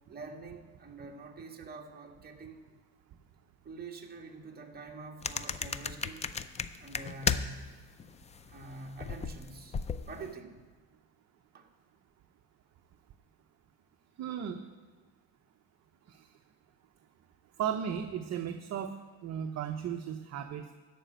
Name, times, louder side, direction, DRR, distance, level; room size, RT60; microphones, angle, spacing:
voice 1, 0.1-2.6 3.6-6.3 6.8-7.7 8.5-9.8 10.1-10.6 11.5-11.7, right 3 dB, 20° right, 0 dB, 1.7 m, -46 dB
sound 1, 5.2-7.7 8.0-10.3, left 6 dB, 15° left, 0.4 m, -34 dB
voice 2, 14.2-14.6 16.1-16.2 17.6-18.9 19.2-20.7, right 8 dB, 40° right, 6 dB, 0.8 m, -35 dB
13.5 x 5.1 x 9.1 m, 1.4 s
cardioid pair, 120°, 41 cm